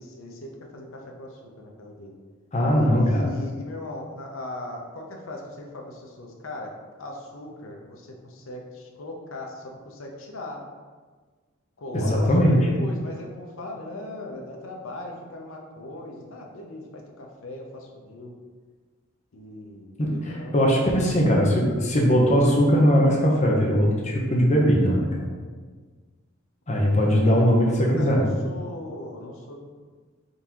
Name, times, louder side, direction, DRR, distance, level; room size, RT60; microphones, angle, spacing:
voice 1, 0.0-2.1 3.0-10.6 11.8-18.4 19.3-20.8 27.1-29.6, left 2 dB, 70° left, 1 dB, 0.6 m, -39 dB
voice 2, 2.5-3.3 11.9-12.6 20.0-25.3 26.7-28.2, equal, 35° left, -2 dB, 0.7 m, -20 dB
3.9 x 3.6 x 2.9 m, 1.5 s
head